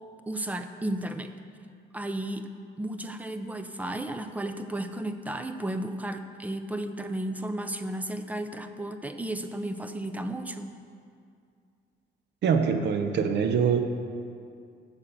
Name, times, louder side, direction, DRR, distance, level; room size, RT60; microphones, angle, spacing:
voice 1, 0.3-1.3 1.9-2.4 2.8-10.7, right 1 dB, 5° right, 8 dB, 0.6 m, -33 dB
voice 2, 12.4-13.8, right 6 dB, 60° right, 6 dB, 0.8 m, -24 dB
8.5 x 7.3 x 6.7 m, 2.3 s
cardioid pair, 120°, 21 cm